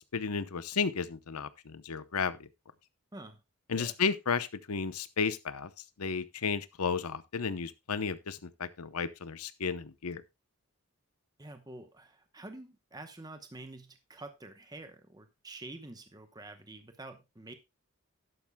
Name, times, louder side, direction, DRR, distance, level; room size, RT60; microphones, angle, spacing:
voice 1, 0.1-2.5 3.7-5.7 6.0-10.2, left 5 dB, 90° left, 0.8 m, -33 dB
voice 2, 11.4-17.5, right 2 dB, 15° right, 0.9 m, -47 dB
12.0 x 11.0 x 2.2 m
head